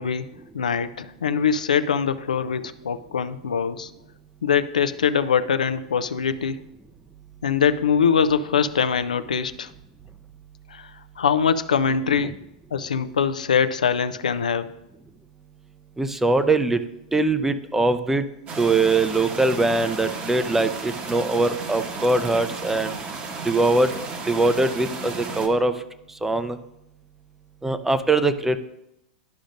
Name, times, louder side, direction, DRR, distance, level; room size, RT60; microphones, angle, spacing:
voice 1, 0.0-3.9 4.4-6.6 7.4-9.7 10.7-12.4 12.7-14.7, left 7 dB, 90° left, 12 dB, 0.4 m, -23 dB
voice 2, 16.0-16.8 17.1-18.3 18.6-22.9 23.4-23.9 24.3-25.7 26.2-26.6 27.6-28.6, right 2 dB, 10° right, 11 dB, 0.5 m, -22 dB
sound 1, 18.5-25.5, right 4 dB, 30° right, 1.1 m, -33 dB
11.5 x 5.0 x 2.6 m, 0.83 s
hypercardioid pair, 110°, 4 cm